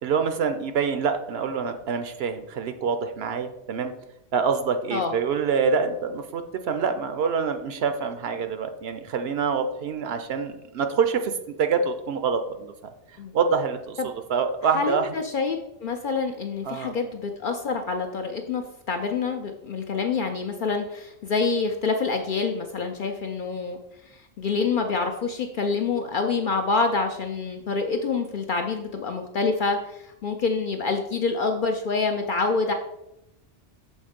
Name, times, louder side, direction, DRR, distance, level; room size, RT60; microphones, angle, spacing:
voice 1, 0.0-3.9 4.3-11.3 11.6-12.7 13.3-14.0 14.3-15.1 16.6-16.9, right 5 dB, 65° right, 8 dB, 0.7 m, -26 dB
voice 2, 14.7-23.8 24.1-32.7, left 4 dB, 60° left, 4 dB, 0.5 m, -27 dB
6.3 x 3.1 x 5.1 m, 0.87 s
omnidirectional pair, 1.2 m